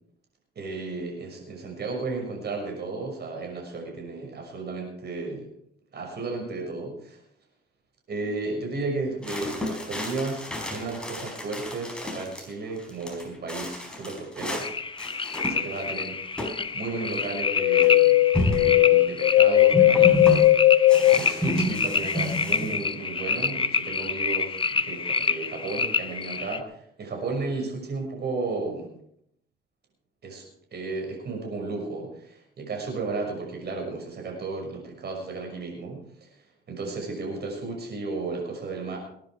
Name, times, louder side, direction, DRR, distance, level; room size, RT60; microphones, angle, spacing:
voice 1, 0.5-5.5 5.9-7.2 8.1-14.7 15.5-20.7 21.1-28.9 30.2-36.3 36.7-39.0, right 3 dB, 55° right, 1 dB, 6.2 m, -34 dB
sound 1, 9.2-12.4 12.8-14.7 15.0-15.9 16.4-16.6 16.9-17.0 17.8-17.9 18.3-18.8 19.7-20.4 20.9-22.7, equal, 5° left, 4.8 m, -30 dB
sound 2, 14.6-26.6, left 4 dB, 25° left, 0.9 m, -28 dB
sound 3, 17.5-21.2, left 15 dB, 90° left, 0.6 m, -18 dB
20.5 x 10.5 x 4.8 m, 0.69 s
cardioid pair, 90°, 20 cm